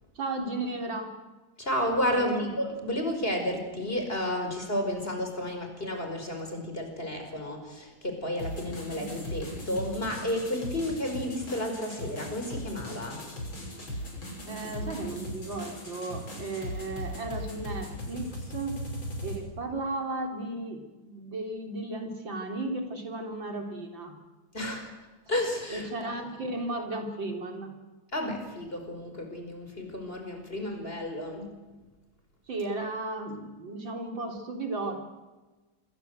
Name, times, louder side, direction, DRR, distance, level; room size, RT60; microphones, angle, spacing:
voice 1, 0.2-1.1 2.1-2.5 14.4-18.9 19.2-24.2 25.7-27.7 32.5-35.1, right 2 dB, 70° right, 3 dB, 4.3 m, -35 dB
voice 2, 1.6-13.2 24.5-24.9 25.3-25.9 28.1-31.5, left 1 dB, 25° left, 4 dB, 5.6 m, -32 dB
sound 1, 8.4-19.4, equal, 80° left, 7.3 m, -38 dB
27.5 x 23.0 x 8.2 m, 1.2 s
omnidirectional pair, 2.1 m